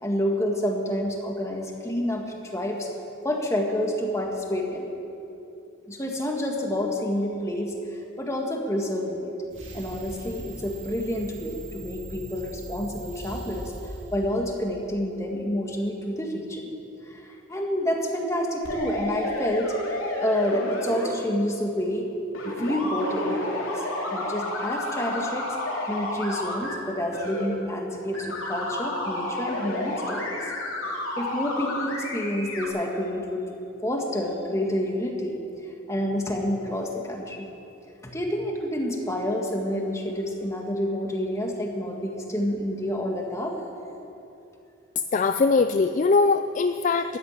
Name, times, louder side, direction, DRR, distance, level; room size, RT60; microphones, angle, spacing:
voice 1, 0.0-2.9 3.2-4.9 5.9-9.3 9.7-13.7 14.1-16.7 17.0-19.7 20.2-22.1 22.4-23.9 24.1-25.5 25.9-30.4 31.2-33.5 33.8-37.5 38.0-43.6, equal, 15° left, 0 dB, 1.8 m, -28 dB
sound 1, 9.5-14.9, right 1 dB, 65° right, 3.4 m, -40 dB
sound 2, 18.6-21.1 22.3-26.8 27.1-27.4 28.1-32.7, left 1 dB, 80° left, 3.1 m, -31 dB
voice 2, 45.1-47.2, left 4 dB, 35° left, 9 dB, 0.4 m, -21 dB
13.5 x 9.8 x 9.7 m, 2.9 s
head